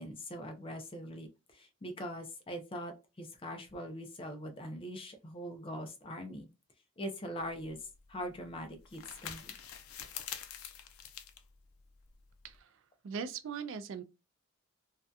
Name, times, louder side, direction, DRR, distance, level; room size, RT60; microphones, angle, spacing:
voice 1, 0.0-6.5 7.0-7.8 8.1-9.5, equal, 25° left, 0.4 m, -42 dB
sound 1, 7.4-12.6, left 9 dB, 80° left, 0.4 m, -47 dB
voice 2, 12.4-12.8 13.0-14.0, right 6 dB, 60° right, 0.3 m, -40 dB
2.6 x 2.2 x 2.3 m
head